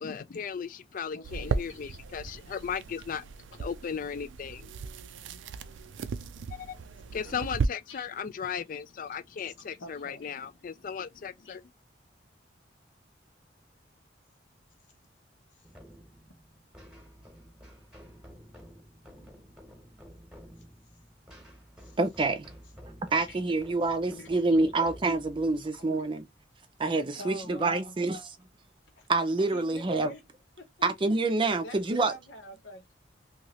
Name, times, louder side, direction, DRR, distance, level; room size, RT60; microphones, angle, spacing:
voice 1, 0.0-3.2 3.6-4.7 6.5-6.8 7.1-11.6, left 7 dB, 45° left, 0.3 m, -36 dB
voice 2, 1.1-2.0 4.6-4.7 7.9-8.1 9.4-10.4 11.4-11.6 21.8-22.0 23.3-23.4 24.1-24.7 25.5-25.6 27.2-28.0 29.0-29.1 29.5-30.2 30.6-30.9 31.6-32.9, left 1 dB, 85° left, 1.1 m, -46 dB
sound 1, 1.2-7.7, right 4 dB, 90° right, 0.4 m, -36 dB
sound 2, 15.6-27.0, equal, 5° right, 1.1 m, -52 dB
voice 3, 22.0-22.5 23.1-26.2 26.8-28.2 29.1-30.1 30.8-32.1, right 3 dB, 25° right, 0.4 m, -27 dB
2.9 x 2.8 x 2.9 m
head